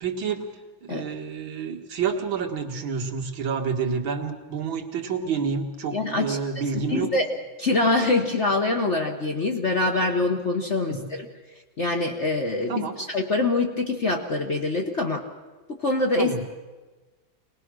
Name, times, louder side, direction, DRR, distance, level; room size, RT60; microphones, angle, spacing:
voice 1, 0.0-7.1 10.9-11.1 12.7-13.0 16.2-16.4, right 6 dB, 80° right, 4 dB, 2.4 m, -29 dB
voice 2, 5.9-6.4 6.7-7.3 7.6-11.3 11.8-15.2 15.8-16.5, left 2 dB, 40° left, 1 dB, 1.4 m, -24 dB
23.0 x 19.5 x 6.2 m, 1.3 s
omnidirectional pair, 2.2 m